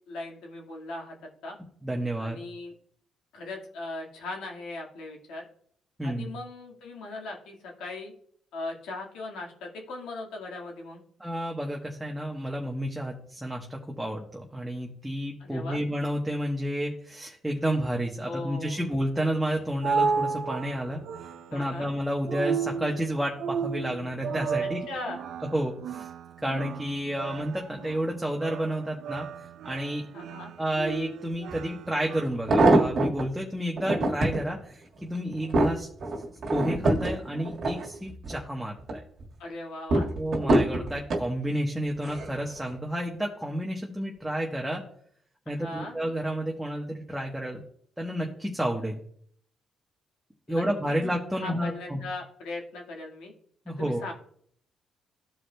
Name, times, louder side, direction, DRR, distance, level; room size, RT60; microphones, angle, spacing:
voice 1, 0.1-1.2 1.4-1.6 2.2-2.7 3.3-5.5 6.0-8.1 8.5-11.0 15.4-15.8 18.2-18.9 21.5-21.9 24.6-25.2 30.1-30.5 39.4-40.1 45.5-45.9 50.5-51.0 51.3-53.3 53.7-54.1, left 2 dB, 90° left, 0 dB, 1.7 m, -39 dB
voice 2, 1.8-2.4 6.0-6.3 11.2-21.0 21.5-24.8 25.5-26.1 26.4-29.3 29.6-30.0 30.6-35.9 36.5-39.0 40.2-44.8 45.5-47.6 48.0-49.0 50.5-52.0 53.7-54.0, equal, 5° right, -1 dB, 1.0 m, -30 dB
sound 1, 19.4-32.2, right 5 dB, 75° right, 0.5 m, -34 dB
sound 2, 31.5-31.6 32.2-33.3 33.8-34.4 35.0-38.4 38.8-39.3 39.9-41.3 42.0-42.4 42.7-42.8, right 2 dB, 55° right, 1.6 m, -24 dB
14.5 x 4.8 x 2.2 m, 0.63 s
cardioid pair, 90°, 0 cm